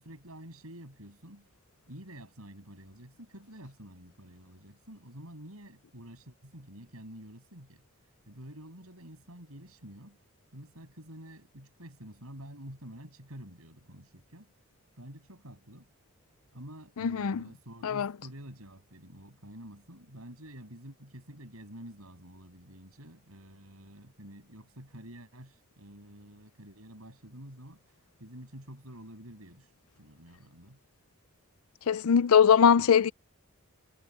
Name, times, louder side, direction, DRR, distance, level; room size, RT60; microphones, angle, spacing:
voice 1, 0.0-1.5 1.9-10.3 10.5-14.5 15.0-15.9 16.5-30.8, right 1 dB, 90° right, 7.5 m, -49 dB
voice 2, 17.0-17.4 17.8-18.1 31.9-33.1, left 7 dB, 80° left, 0.5 m, -21 dB
head